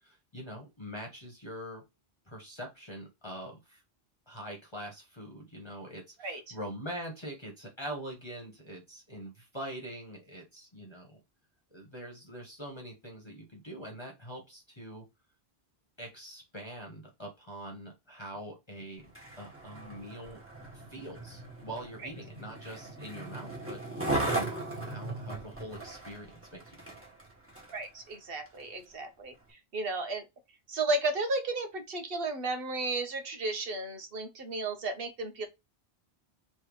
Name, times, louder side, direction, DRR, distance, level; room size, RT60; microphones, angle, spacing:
voice 1, 0.0-1.8 2.3-3.8 4.3-11.2 11.7-15.0 16.0-19.1 19.4-20.4 20.7-24.5 24.8-26.9, right 1 dB, 25° left, 1.4 m, -44 dB
voice 2, 6.2-6.5 27.7-30.3 30.7-35.5, right 2 dB, 65° right, 1.2 m, -34 dB
Skateboard, 19.0-27.8 28.5-28.6, right 2 dB, 10° right, 1.7 m, -38 dB
3.5 x 3.2 x 4.7 m
omnidirectional pair, 1.1 m